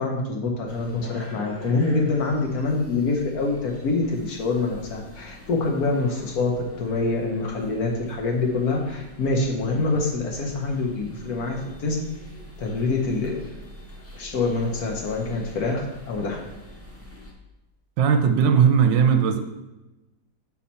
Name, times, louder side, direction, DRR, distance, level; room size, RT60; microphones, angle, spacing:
voice 1, 0.0-12.0 12.6-13.3 14.1-16.4, left 3 dB, 60° left, 1 dB, 1.2 m, -25 dB
sound 1, 0.7-17.3, left 1 dB, 20° left, 0.4 m, -45 dB
voice 2, 18.0-19.4, right 7 dB, 80° right, 7 dB, 1.2 m, -18 dB
5.8 x 4.2 x 4.2 m, 1.0 s
omnidirectional pair, 2.0 m